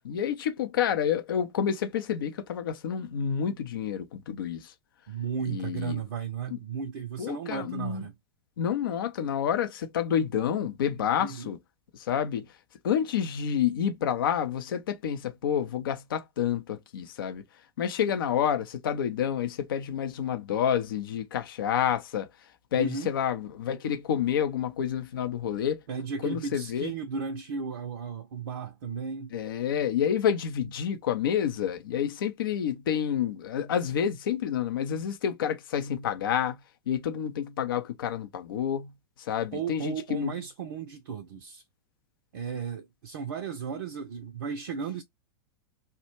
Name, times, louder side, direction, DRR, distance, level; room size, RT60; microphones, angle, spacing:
voice 1, 0.0-4.7 5.5-6.0 6.5-6.6 7.2-8.1 8.6-11.6 11.9-12.5 12.8-17.4 17.8-22.3 22.7-25.8 26.2-26.9 29.3-36.6 36.9-38.9 39.2-40.4, left 9 dB, 60° left, 0.5 m, -29 dB
voice 2, 5.1-8.1 11.2-11.5 22.7-23.1 25.9-29.3 39.5-41.6 42.3-45.0, right 6 dB, 55° right, 0.4 m, -35 dB
2.1 x 2.1 x 3.0 m
figure-of-eight pair, 95°, 13 cm